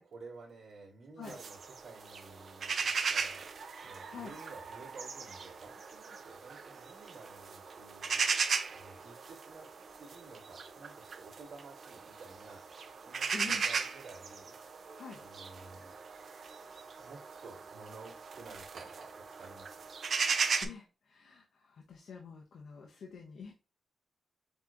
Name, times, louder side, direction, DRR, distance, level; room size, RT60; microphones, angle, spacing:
voice 1, 0.1-9.7 10.0-14.9 15.2-15.9 17.0-19.9, right 3 dB, 75° right, -5 dB, 2.6 m, -53 dB
sound 1, 1.2-20.7, right 5 dB, 55° right, 0.6 m, -38 dB
voice 2, 13.3-13.6 14.9-15.2 20.6-23.5, left 5 dB, 85° left, 0 dB, 0.8 m, -46 dB
7.3 x 2.9 x 2.5 m, 0.33 s
wide cardioid pair, 155°, 0 cm